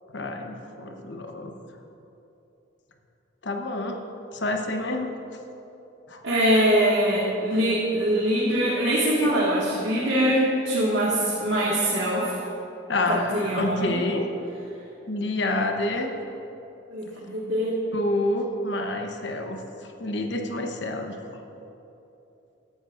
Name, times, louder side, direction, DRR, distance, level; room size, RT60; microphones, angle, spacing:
voice 1, 0.1-1.5 3.4-4.0 4.3-5.1 6.1-6.2 9.2-9.5 12.9-14.3 15.1-16.1 17.9-19.6 20.0-21.2, left 2 dB, 60° left, 3 dB, 1.0 m, -28 dB
voice 2, 6.2-12.4 13.1-14.0 16.9-17.8, equal, 65° right, -7 dB, 1.8 m, -23 dB
16.5 x 11.5 x 2.6 m, 3.0 s
head